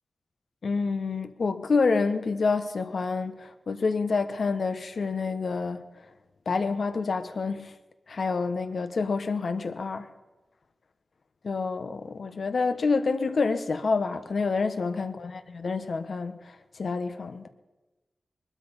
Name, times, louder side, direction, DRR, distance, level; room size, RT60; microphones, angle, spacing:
voice 1, 0.6-5.8 6.5-7.7 8.1-10.1 11.4-17.5, left 4 dB, 70° left, 9 dB, 1.1 m, -28 dB
21.0 x 12.5 x 5.5 m, 1.1 s
wide cardioid pair, 80°, 0 cm